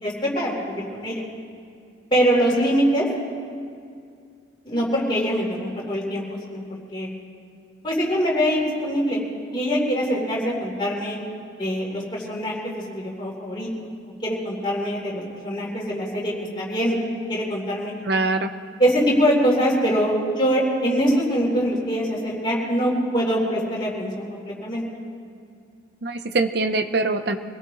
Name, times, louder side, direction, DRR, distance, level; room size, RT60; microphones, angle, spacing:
voice 1, 0.0-1.2 2.1-3.1 4.6-7.1 7.8-9.2 9.5-11.2 11.6-13.7 14.2-17.0 17.3-17.9 18.8-24.8, equal, 25° left, -5 dB, 3.6 m, -23 dB
voice 2, 18.0-18.5 26.0-27.4, right 3 dB, 55° right, 8 dB, 0.8 m, -23 dB
25.5 x 17.0 x 3.1 m, 2.3 s
head